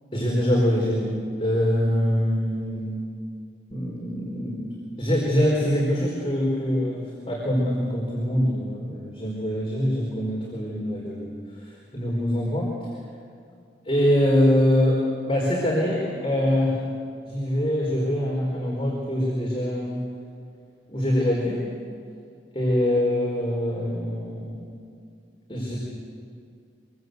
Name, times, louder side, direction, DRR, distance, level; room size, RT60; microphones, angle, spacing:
voice 1, 0.1-3.0 3.7-11.3 11.6-12.7 13.8-16.8 17.2-20.0 20.9-21.7 22.5-24.6 25.5-25.8, equal, 30° left, -4 dB, 4.5 m, -24 dB
26.5 x 23.0 x 8.1 m, 2.3 s
head